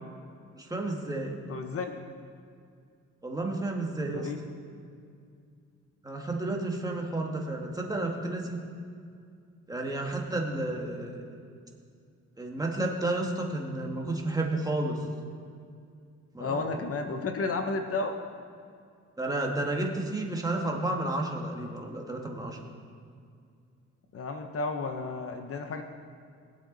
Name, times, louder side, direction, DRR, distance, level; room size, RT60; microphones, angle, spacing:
voice 1, 0.5-1.4 3.2-4.3 6.0-8.6 9.7-11.2 12.4-15.0 16.3-16.8 19.2-22.6, right 2 dB, 10° right, 0 dB, 1.8 m, -31 dB
voice 2, 1.5-2.1 4.1-4.4 16.4-18.1 24.1-25.8, left 3 dB, 50° left, 5 dB, 0.9 m, -32 dB
21.0 x 8.5 x 4.0 m, 2.3 s
cardioid pair, 110°, 30 cm